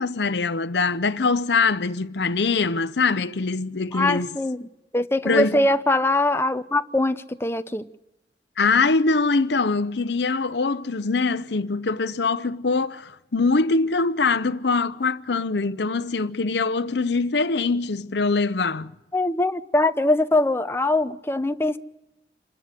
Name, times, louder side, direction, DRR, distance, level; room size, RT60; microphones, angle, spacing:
voice 1, 0.0-4.3 5.2-5.7 8.6-18.9, left 4 dB, 75° left, 0.7 m, -23 dB
voice 2, 3.9-4.7 4.9-7.8 19.1-21.8, left 2 dB, 15° left, 0.8 m, -22 dB
27.0 x 12.5 x 8.2 m
head